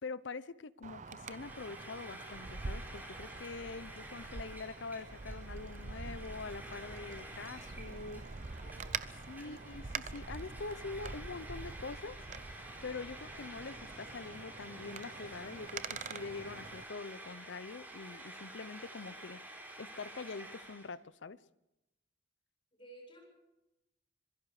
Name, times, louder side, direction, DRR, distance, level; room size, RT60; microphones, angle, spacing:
voice 1, 0.0-8.2 9.3-12.2 12.8-19.4 19.8-21.4, left 4 dB, 70° left, 17 dB, 0.6 m, -44 dB
Wind, 0.8-16.8, right 4 dB, 40° right, 0.7 m, -45 dB
Frying (food), 1.2-20.9, right 1 dB, 10° right, 3.6 m, -50 dB
voice 2, 8.4-9.0 9.4-9.6 22.7-23.2, right 1 dB, 25° left, 0 dB, 7.7 m, -55 dB
26.0 x 22.5 x 4.9 m, 0.95 s
head